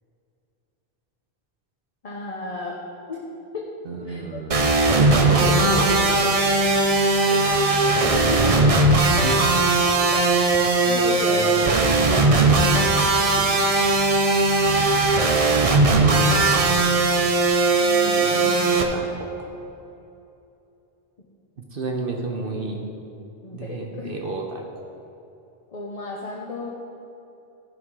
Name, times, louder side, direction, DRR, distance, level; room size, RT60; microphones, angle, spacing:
voice 1, 2.0-2.8 3.1-3.3 3.5-3.7 4.1-4.4 5.7-6.4 7.3-8.5 9.3-9.4 9.8-10.3 10.6-13.0 17.7-19.4 23.4-24.2 25.7-26.7, left 3 dB, 40° left, -2 dB, 0.9 m, -34 dB
voice 2, 3.8-6.3 9.2-9.5 11.3-12.1 13.3-13.6 16.0-16.8 18.0-19.5 21.7-22.9 23.5-24.9, right 3 dB, 60° right, 1 dB, 1.1 m, -31 dB
sound 1, 4.5-18.8, right 3 dB, 40° right, 0.7 m, -19 dB
14.0 x 5.7 x 4.8 m, 2.8 s
omnidirectional pair, 1.0 m